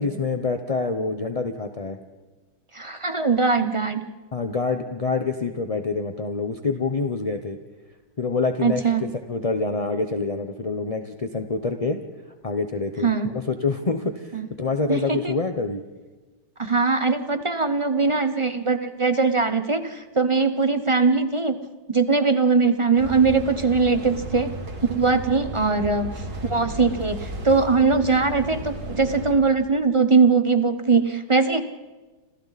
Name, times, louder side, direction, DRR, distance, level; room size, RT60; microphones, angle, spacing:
voice 1, 0.0-2.0 4.3-7.6 8.2-12.0 12.4-15.8, left 4 dB, 35° left, 6 dB, 0.6 m, -26 dB
voice 2, 2.7-4.1 8.6-9.0 13.0-13.3 14.3-14.5 14.9-15.3 16.6-21.6 21.9-24.6 24.9-26.1 26.5-31.6, right 4 dB, 35° right, 9 dB, 0.4 m, -21 dB
sound 1, 23.0-29.3, right 1 dB, 55° right, 2.9 m, -34 dB
29.0 x 26.5 x 4.1 m, 1.2 s
omnidirectional pair, 2.0 m